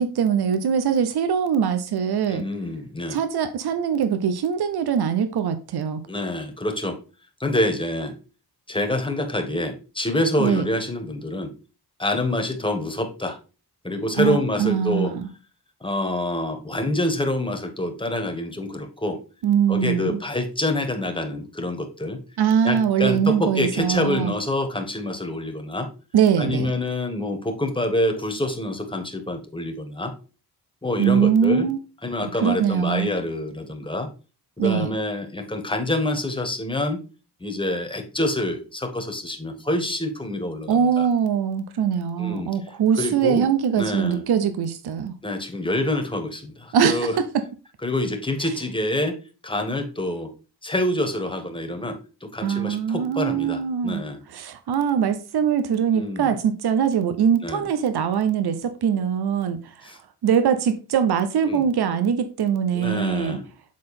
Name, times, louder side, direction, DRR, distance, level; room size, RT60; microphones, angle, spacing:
voice 1, 0.0-2.4 3.1-6.0 10.4-10.6 14.2-15.3 19.4-20.2 22.4-24.3 26.1-26.7 31.0-31.8 32.4-33.1 34.6-34.9 40.7-45.1 46.7-47.2 52.4-54.0 54.3-59.9 60.2-63.4, right 8 dB, 75° right, 0.7 m, -22 dB
voice 2, 2.3-3.2 6.1-7.0 7.4-8.1 8.7-11.5 12.0-13.4 13.8-15.1 15.8-19.2 19.7-22.2 22.6-25.9 26.4-30.1 30.8-31.7 32.0-34.1 34.6-37.0 37.4-41.1 42.2-42.5 43.0-43.4 43.8-44.2 45.2-47.2 47.8-49.2 49.4-50.3 50.6-54.2 55.9-56.3 57.4-57.7 59.8-60.0 61.5-61.6 62.7-63.4, left 1 dB, 15° left, 1.6 m, -26 dB
7.3 x 3.9 x 4.2 m
cardioid pair, 70°, 39 cm